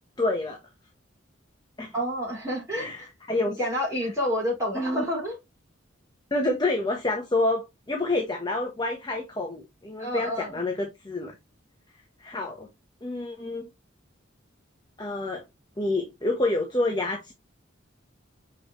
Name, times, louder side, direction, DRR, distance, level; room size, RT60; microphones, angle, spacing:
voice 1, 0.2-0.6 1.8-1.9 2.7-3.6 4.7-5.0 6.3-11.3 12.2-12.7 13.0-13.7 15.0-15.4 15.8-17.3, left 2 dB, 20° left, 0.9 m, -28 dB
voice 2, 1.9-3.1 3.5-5.4 10.0-10.5, equal, 15° right, 4.4 m, -29 dB
6.2 x 4.9 x 3.0 m
head